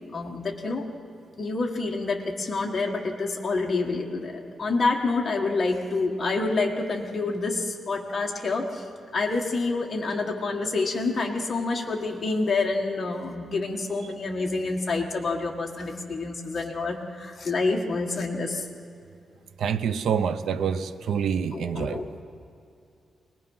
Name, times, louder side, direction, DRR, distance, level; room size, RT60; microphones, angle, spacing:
voice 1, 0.1-0.9 1.4-8.9 9.1-18.7 21.5-22.1, left 3 dB, 30° left, 1.7 m, -28 dB
voice 2, 19.6-22.2, right 7 dB, 80° right, 0.8 m, -27 dB
25.5 x 19.5 x 5.6 m
wide cardioid pair, 130°, 0 cm